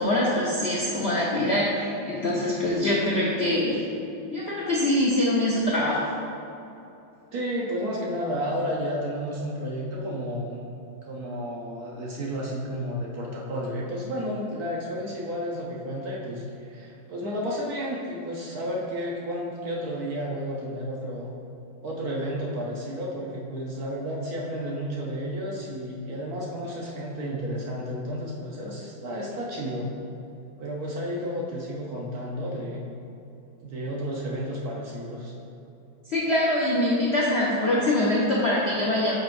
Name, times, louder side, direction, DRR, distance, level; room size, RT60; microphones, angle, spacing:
voice 1, 0.0-3.8 4.3-6.0 36.1-39.2, left 1 dB, 60° left, -6 dB, 0.6 m, -24 dB
voice 2, 7.3-10.6 11.0-21.3 21.8-29.9 30.6-32.8 33.6-35.3, equal, 60° right, -3 dB, 1.1 m, -32 dB
8.8 x 5.3 x 2.6 m, 2.8 s
omnidirectional pair, 2.2 m